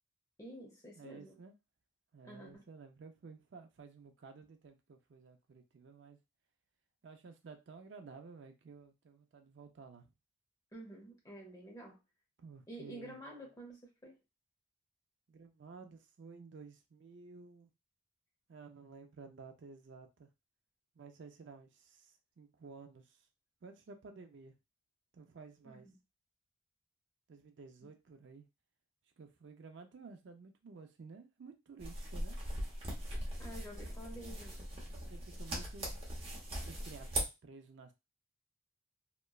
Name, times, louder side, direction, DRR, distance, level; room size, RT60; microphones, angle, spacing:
voice 1, 0.4-1.4 2.2-2.7 10.7-12.0 12.7-14.2 25.6-25.9 27.8-27.9 33.4-34.6, right 1 dB, 15° left, 0.8 m, -50 dB
voice 2, 1.0-1.5 2.1-6.2 7.0-10.1 12.4-13.2 15.3-17.7 18.5-20.3 21.0-23.3 23.6-24.5 25.1-25.9 27.3-28.4 29.2-32.4 33.5-34.0 35.1-35.9 36.6-37.9, right 4 dB, 60° right, 0.4 m, -53 dB
sound 1, 31.8-37.2, right 1 dB, 30° right, 0.7 m, -40 dB
2.9 x 2.2 x 2.3 m
head